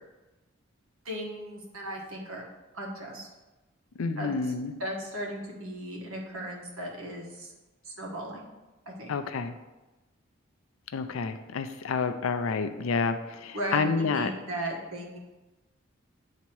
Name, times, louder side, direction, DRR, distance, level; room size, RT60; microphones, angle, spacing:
voice 1, 1.0-2.4 2.7-3.3 4.2-4.3 4.8-7.5 7.8-8.5 8.9-9.1 13.5-15.2, right 1 dB, 80° right, -1 dB, 1.3 m, -36 dB
voice 2, 4.0-4.7 9.1-9.5 10.9-14.3, left 4 dB, 75° left, 9 dB, 0.4 m, -29 dB
8.1 x 2.9 x 4.5 m, 1.1 s
head